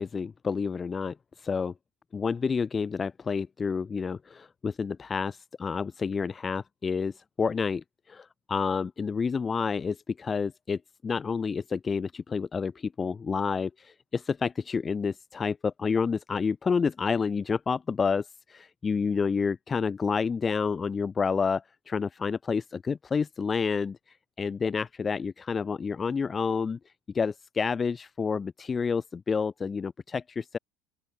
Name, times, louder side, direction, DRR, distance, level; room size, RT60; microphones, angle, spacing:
voice 1, 0.0-1.7 2.1-26.8 27.1-30.6, left 5 dB, 25° left, 5.1 m, -29 dB
open air
supercardioid pair, 95°, 0 cm